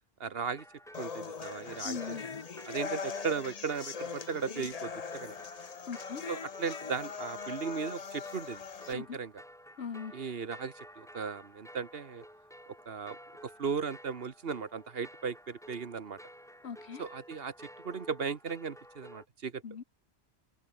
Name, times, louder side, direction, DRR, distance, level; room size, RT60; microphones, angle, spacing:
voice 1, 0.2-0.6 1.0-2.0 2.7-5.3 6.3-9.3 10.1-12.2 12.9-16.2 17.0-19.6, right 6 dB, 65° right, 1.5 m, -37 dB
sound 1, 0.5-19.3, equal, 5° left, 5.1 m, -53 dB
sound 2, 0.9-8.9, left 6 dB, 40° left, 0.9 m, -41 dB
voice 2, 1.8-2.3 5.8-6.2 8.9-9.2 9.8-10.1 16.6-17.0 19.6-19.8, left 6 dB, 85° left, 1.6 m, -40 dB
omnidirectional pair, 1.1 m